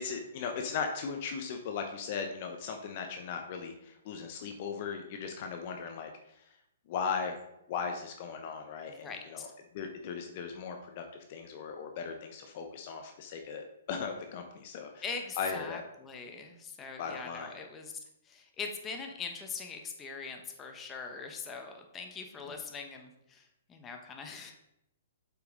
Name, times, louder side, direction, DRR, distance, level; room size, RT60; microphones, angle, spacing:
voice 1, 0.0-6.1 6.9-7.4 7.7-9.5 9.7-15.0 15.4-15.8 17.0-17.5, left 6 dB, 45° left, 5 dB, 0.9 m, -37 dB
voice 2, 8.9-9.5 15.0-17.9 18.3-24.5, left 5 dB, 20° left, 4 dB, 1.2 m, -42 dB
7.8 x 5.7 x 3.9 m, 0.81 s
hypercardioid pair, 125°, 0 cm